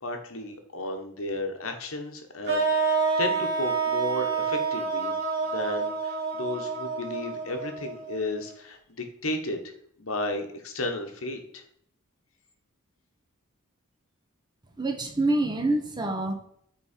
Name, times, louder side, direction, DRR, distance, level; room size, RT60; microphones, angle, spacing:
voice 1, 0.0-5.2 5.5-9.6 10.0-11.6, left 2 dB, 70° left, 5 dB, 1.3 m, -33 dB
sound 1, 2.5-8.5, right 4 dB, 50° right, 2.7 m, -28 dB
voice 2, 14.8-16.3, right 2 dB, 20° right, 4 dB, 1.1 m, -26 dB
8.8 x 4.1 x 4.4 m, 0.66 s
head